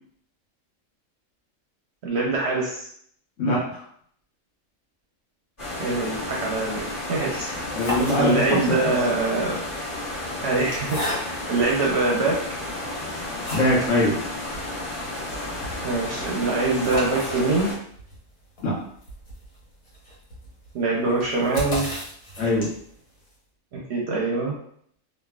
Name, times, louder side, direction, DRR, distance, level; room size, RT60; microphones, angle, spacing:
voice 1, 2.0-2.9 5.8-6.8 7.1-7.5 8.2-9.6 10.4-12.4 15.8-17.7 20.7-21.9 23.7-24.6, right 3 dB, 60° right, -3 dB, 0.7 m, -24 dB
voice 2, 3.4-3.8 7.4-8.6 13.5-14.1 18.6-18.8 22.4-22.7, left 1 dB, 60° left, -5 dB, 1.2 m, -22 dB
sound 1, 5.6-17.7, left 1 dB, 40° left, 1.5 m, -32 dB
sound 2, 7.7-8.7 9.6-11.6 12.3-12.4 12.8-14.0 14.3-14.4 14.7-14.8 15.1-23.0, left 1 dB, 85° left, 1.4 m, -35 dB
3.2 x 2.2 x 2.3 m, 0.64 s
omnidirectional pair, 1.5 m